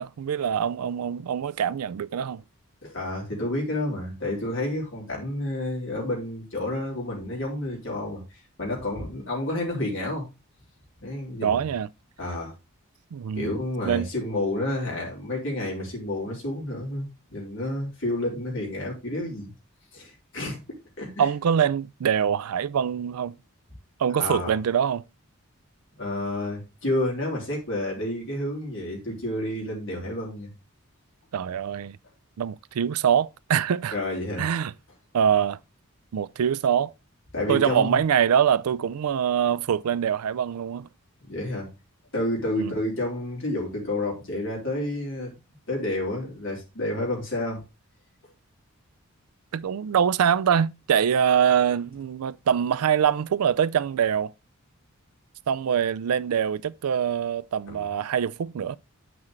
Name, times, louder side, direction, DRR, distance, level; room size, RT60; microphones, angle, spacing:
voice 1, 0.0-2.4 11.4-11.9 13.1-13.5 13.8-14.1 21.2-23.4 24.0-25.1 31.3-32.0 32.4-34.0 34.4-34.7 35.1-35.6 36.1-36.9 37.5-40.9 42.6-42.8 49.5-54.3 55.5-58.8, right 8 dB, 85° right, 0.4 m, -24 dB
voice 2, 2.8-10.3 11.0-11.7 12.2-12.5 13.3-19.5 19.9-21.3 24.2-24.6 26.0-30.5 33.9-34.5 37.3-38.0 41.3-41.7 42.1-45.3 45.7-47.6 57.7-57.8, left 1 dB, 55° left, 3.6 m, -30 dB
8.8 x 6.0 x 3.2 m
head